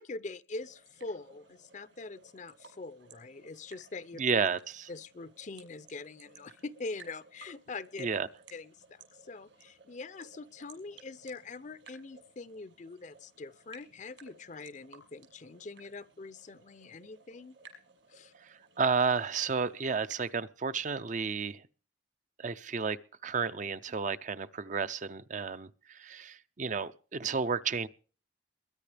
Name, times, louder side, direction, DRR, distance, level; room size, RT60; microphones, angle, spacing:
voice 1, 0.0-4.2 4.9-8.1 8.5-17.6 18.1-18.3, left 3 dB, 40° left, 0.6 m, -43 dB
sound 1, 0.6-20.4, right 4 dB, 70° right, 6.2 m, -58 dB
voice 2, 4.2-4.9 8.0-8.3 18.4-21.6 22.4-23.0 23.2-27.9, right 5 dB, 40° right, 0.5 m, -32 dB
22.0 x 10.5 x 3.4 m
head